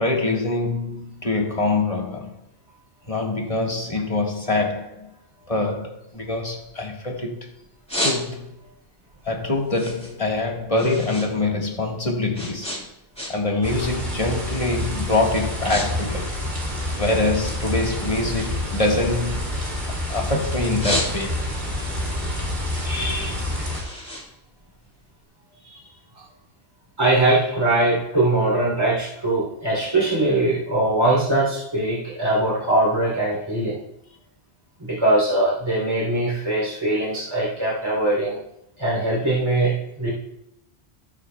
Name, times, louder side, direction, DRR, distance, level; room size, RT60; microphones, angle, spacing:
voice 1, 0.0-2.4 3.1-5.1 5.5-7.4 8.0-8.5 9.3-12.8 13.3-16.3 17.0-19.5 20.1-21.5 22.8-23.6 25.6-25.8, left 2 dB, 35° left, 1.7 m, -24 dB
sound 1, 6.1-7.3 7.6-8.7 9.1-11.3 11.6-13.6 13.9-14.3 14.9-15.0 15.3-15.9 16.1-17.4 17.8-20.2 20.6-21.6 22.0-25.1, equal, 5° left, 3.1 m, -32 dB
sound 2, 13.6-23.8, left 1 dB, 45° right, 2.8 m, -28 dB
voice 2, 27.0-33.8 34.8-38.4 38.8-40.1, right 2 dB, 25° right, 3.4 m, -21 dB
18.0 x 8.5 x 2.3 m
omnidirectional pair, 1.1 m